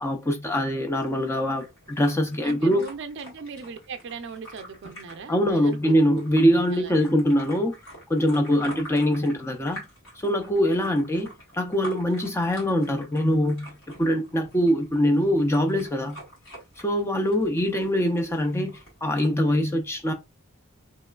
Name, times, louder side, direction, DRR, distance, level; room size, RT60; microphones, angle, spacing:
voice 1, 0.0-2.8 5.3-7.7 8.1-9.8 10.2-13.7 14.0-16.2 16.8-20.1, equal, 10° left, 0.3 m, -23 dB
sound 1, 1.0-19.3, equal, 70° left, 1.6 m, -47 dB
voice 2, 2.4-5.9 6.7-6.9 8.6-8.8, right 4 dB, 55° right, 0.4 m, -39 dB
3.1 x 2.9 x 2.2 m
head